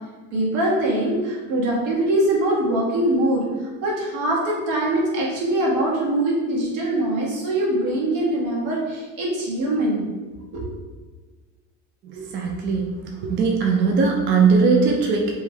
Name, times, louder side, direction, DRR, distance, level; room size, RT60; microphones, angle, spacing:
voice 1, 0.3-10.0 10.5-10.6, right 1 dB, 80° right, -5 dB, 1.5 m, -23 dB
voice 2, 12.0-15.3, right 4 dB, 35° right, 0 dB, 0.4 m, -20 dB
3.2 x 3.1 x 3.4 m, 1.3 s
cardioid pair, 150°, 34 cm